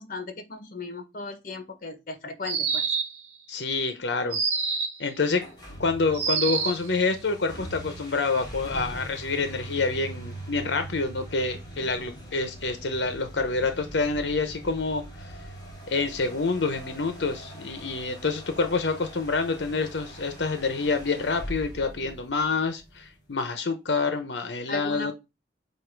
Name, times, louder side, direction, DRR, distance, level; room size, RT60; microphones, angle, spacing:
voice 1, 0.0-2.9 24.7-25.1, left 3 dB, 50° left, 1.2 m, -37 dB
sound 1, 2.4-3.3 4.3-5.1 6.1-6.9, right 5 dB, 40° right, 1.4 m, -27 dB
voice 2, 3.5-4.4 5.0-5.5 5.8-15.0 15.9-25.1, left 3 dB, 85° left, 0.9 m, -27 dB
sound 2, 5.3-22.8, right 1 dB, 25° left, 1.9 m, -42 dB
7.8 x 2.7 x 5.1 m
head